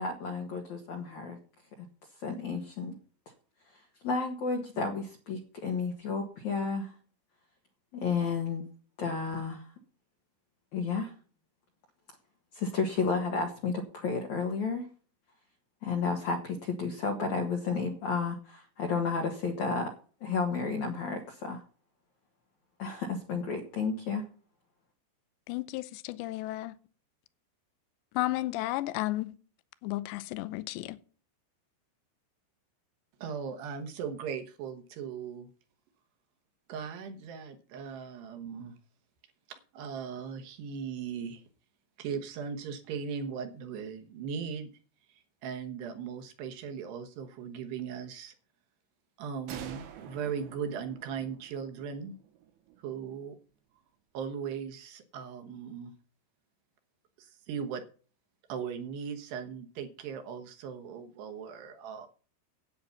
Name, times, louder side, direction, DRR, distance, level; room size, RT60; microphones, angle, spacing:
voice 1, 0.0-1.4 1.8-1.9 2.2-2.9 3.7-6.9 7.9-8.7 9.0-9.7 10.7-11.1 12.5-14.9 15.8-19.9 20.2-21.6 22.8-24.3, left 4 dB, 65° left, 1.9 m, -32 dB
voice 2, 25.5-26.7 28.1-29.3 29.8-31.0, left 17 dB, 80° left, 2.6 m, -33 dB
voice 3, 33.2-35.5 36.7-38.7 39.5-41.4 42.0-44.7 45.1-48.3 49.2-52.2 52.8-53.4 54.1-55.9 57.2-57.8 58.5-62.1, right 6 dB, 70° right, 2.9 m, -38 dB
sound 1, 49.5-53.0, right 9 dB, 85° right, 4.2 m, -48 dB
10.5 x 8.8 x 5.7 m
omnidirectional pair, 5.7 m